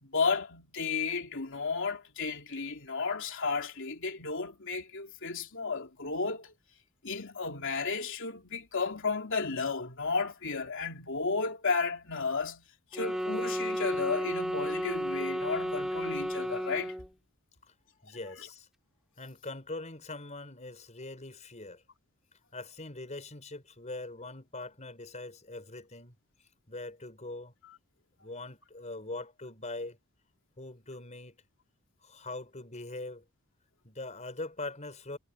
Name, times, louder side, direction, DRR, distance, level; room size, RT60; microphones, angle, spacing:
voice 1, 0.0-6.5 7.0-12.7 12.9-17.0, left 4 dB, 60° left, 3.2 m, -33 dB
sound 1, 12.9-17.1, equal, ahead, 4.8 m, -33 dB
voice 2, 18.0-18.7 19.2-21.8 22.5-26.2 26.7-27.6 28.2-30.0 30.6-31.4 32.0-33.2 33.8-35.2, left 2 dB, 30° left, 5.0 m, -42 dB
head